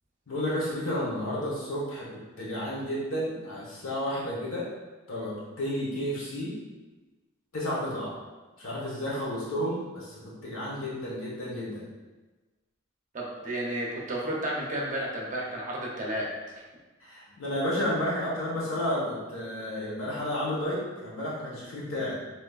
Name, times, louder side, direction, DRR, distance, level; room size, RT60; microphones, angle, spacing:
voice 1, 0.3-2.1 2.4-4.7 5.1-6.6 7.5-8.2 8.6-11.9 17.0-22.1, left 1 dB, 85° left, -6 dB, 1.2 m, -31 dB
voice 2, 13.1-16.5, right 1 dB, 40° right, -3 dB, 0.7 m, -32 dB
3.5 x 3.0 x 2.4 m, 1.2 s
head